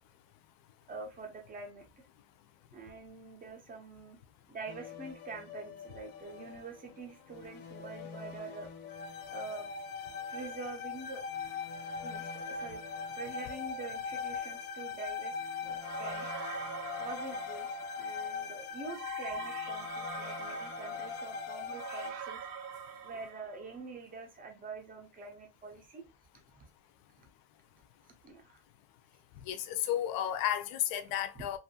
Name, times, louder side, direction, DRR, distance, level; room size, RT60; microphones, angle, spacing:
voice 1, 0.9-1.8 2.7-4.2 4.5-8.7 9.3-9.7 10.2-11.2 12.0-12.8 13.1-16.3 17.0-17.7 18.0-22.5 23.0-26.1 26.6-26.7 27.2-27.3 28.2-28.6 31.3-31.4, right 4 dB, 20° right, 0.5 m, -45 dB
sound 1, 4.7-6.8 7.3-22.1, left 5 dB, 90° left, 0.8 m, -40 dB
sound 2, 15.8-18.0 18.9-23.8, right 7 dB, 60° right, 0.6 m, -45 dB
voice 2, 29.5-31.6, left 11 dB, 50° left, 0.4 m, -32 dB
2.6 x 2.4 x 2.7 m
cardioid pair, 140°, 49 cm